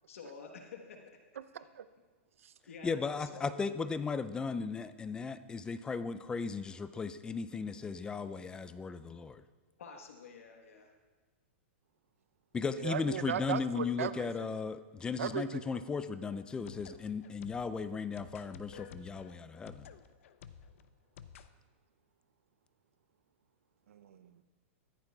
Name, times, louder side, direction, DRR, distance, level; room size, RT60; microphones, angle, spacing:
voice 1, 0.1-1.2 2.7-3.5 9.8-10.9, left 5 dB, 90° left, 3 dB, 1.3 m, -49 dB
voice 2, 1.4-1.8 2.4-2.5 12.8-14.5 15.2-15.8 23.9-24.4, right 9 dB, 85° right, 14 dB, 0.6 m, -38 dB
voice 3, 2.8-9.4 12.5-19.9, left 5 dB, 10° left, 13 dB, 0.3 m, -36 dB
sound 1, 16.3-21.5, left 7 dB, 75° left, 0.6 m, -53 dB
14.0 x 14.0 x 2.3 m, 1.4 s
hypercardioid pair, 140°, 7 cm